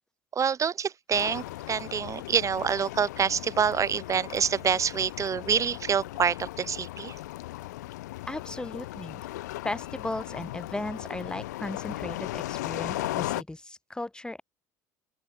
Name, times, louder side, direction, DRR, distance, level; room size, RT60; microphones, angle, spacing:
voice 1, 0.3-7.2, right 7 dB, 35° right, 1.3 m, -27 dB
sound 1, 1.1-13.4, left 17 dB, 85° left, 2.3 m, -37 dB
voice 2, 8.3-9.3 9.6-14.4, left 2 dB, 10° left, 2.3 m, -36 dB
open air
hypercardioid pair, 70°, 9 cm